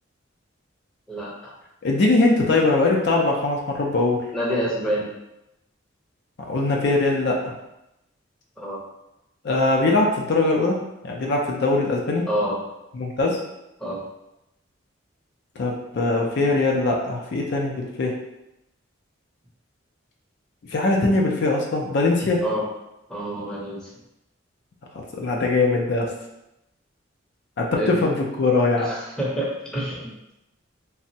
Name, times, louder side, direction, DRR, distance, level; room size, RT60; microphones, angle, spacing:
voice 1, 1.1-1.5 4.3-5.1 8.6-8.8 12.3-12.6 13.8-14.0 22.4-22.6 23.1-23.9 27.8-28.0 28.8-30.3, equal, 5° left, -6 dB, 0.6 m, -27 dB
voice 2, 1.8-4.2 6.5-7.5 9.4-12.3 12.9-13.4 15.6-18.1 20.7-22.4 24.9-26.1 27.6-28.9, left 2 dB, 60° left, -1 dB, 0.4 m, -21 dB
3.3 x 2.0 x 2.7 m, 0.89 s
head